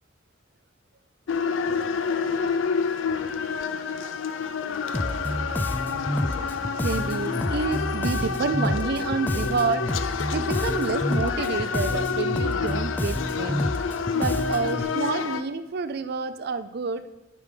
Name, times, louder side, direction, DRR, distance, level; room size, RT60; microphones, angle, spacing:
sound 1, 1.3-15.4, left 5 dB, 90° left, 0.5 m, -28 dB
Bass guitar, 4.9-14.8, left 1 dB, 10° left, 0.3 m, -29 dB
voice 1, 5.6-6.0 6.7-9.9 10.3-13.7 14.1-17.1, right 4 dB, 55° right, 12 dB, 0.4 m, -29 dB
8.3 x 5.1 x 4.9 m, 1.0 s
head